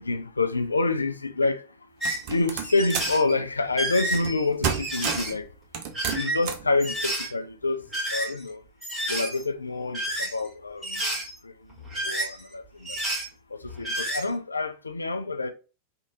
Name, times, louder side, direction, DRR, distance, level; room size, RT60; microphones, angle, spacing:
voice 1, 0.0-1.7 2.3-5.5 6.1-8.6 9.1-11.0 11.4-11.7 12.0-13.0 13.5-15.5, left 3 dB, 80° left, 0.3 m, -27 dB
sound 1, 2.0-2.2 2.6-3.3 3.7-5.3 5.8-6.5 6.8-7.3 7.8-8.5 8.8-9.4 9.9-10.5 10.8-11.3 11.7-12.5 12.9-13.3 13.6-14.2, right 1 dB, ahead, 1.8 m, -30 dB
sound 2, 2.0-3.2 4.1-4.4 4.6-5.4 5.7-6.7, right 7 dB, 45° right, 0.6 m, -30 dB
3.5 x 2.5 x 2.6 m
figure-of-eight pair, 90°, 0 cm